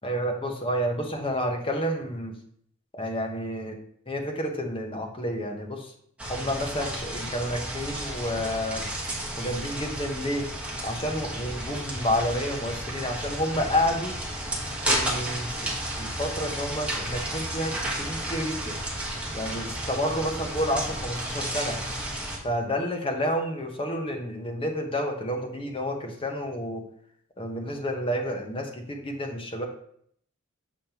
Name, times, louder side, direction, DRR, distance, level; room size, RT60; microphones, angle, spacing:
voice 1, 0.0-2.3 2.9-3.8 4.1-5.9 6.3-8.8 9.4-10.5 10.8-14.2 14.9-18.7 19.3-21.8 22.4-26.8 27.4-29.7, equal, 25° left, 2 dB, 1.0 m, -30 dB
sound 1, 6.2-22.4, right 1 dB, 5° right, 1.2 m, -32 dB
7.2 x 5.3 x 3.0 m, 0.65 s
head